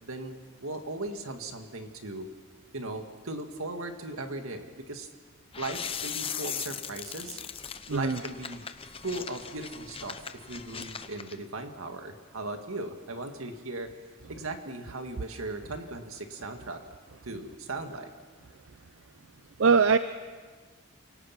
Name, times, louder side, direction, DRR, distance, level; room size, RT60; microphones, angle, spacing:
voice 1, 0.0-2.3 2.7-5.1 5.6-7.4 7.9-8.7 9.0-13.9 14.3-16.8 17.2-18.1, right 2 dB, 80° right, 5 dB, 1.9 m, -38 dB
sound 1, 5.5-11.4, left 7 dB, 25° left, 0.8 m, -39 dB
voice 2, 7.9-8.2 19.6-20.0, right 5 dB, 65° right, 12 dB, 0.5 m, -21 dB
29.0 x 18.0 x 5.9 m, 1.5 s
head